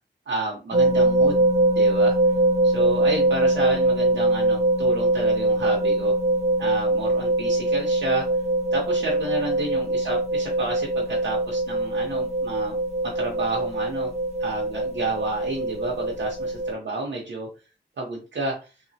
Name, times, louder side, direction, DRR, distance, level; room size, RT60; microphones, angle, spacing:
voice 1, 0.3-1.5 1.7-2.2 2.6-6.1 6.6-8.3 8.7-12.7 13.0-14.1 14.4-17.5 18.0-18.7, right 2 dB, 85° right, -2 dB, 0.6 m, -31 dB
sound 1, 0.7-16.7, right 2 dB, 35° right, 0.6 m, -22 dB
3.1 x 2.0 x 2.6 m, 0.31 s
wide cardioid pair, 65°, 18 cm